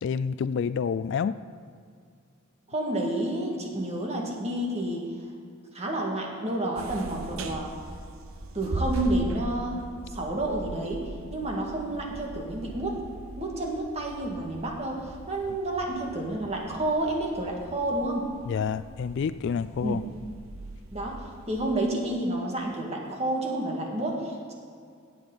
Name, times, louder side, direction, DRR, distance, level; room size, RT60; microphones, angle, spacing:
voice 1, 0.0-1.3 18.5-20.0, left 6 dB, 60° left, 14 dB, 0.3 m, -28 dB
voice 2, 2.7-5.1 5.7-7.8 8.5-13.0 13.4-18.3 19.8-20.0 20.9-21.2 21.5-24.5, right 1 dB, 30° right, -1 dB, 1.9 m, -30 dB
sound 1, 6.8-21.7, right 1 dB, 75° right, 0.9 m, -40 dB
16.5 x 8.6 x 4.0 m, 2.3 s
head